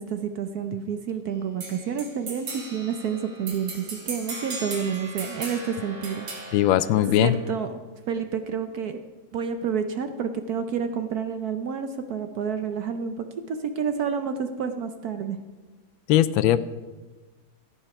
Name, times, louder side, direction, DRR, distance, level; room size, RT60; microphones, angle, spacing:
voice 1, 0.0-6.6 7.2-7.8 8.1-9.0 9.3-15.4, right 7 dB, 65° right, 8 dB, 1.0 m, -29 dB
sound 1, 1.6-7.6, right 3 dB, 80° right, 3.0 m, -38 dB
voice 2, 6.5-7.3 16.1-16.6, left 13 dB, 80° left, 15 dB, 1.3 m, -19 dB
14.0 x 9.0 x 5.8 m, 1.2 s
omnidirectional pair, 2.2 m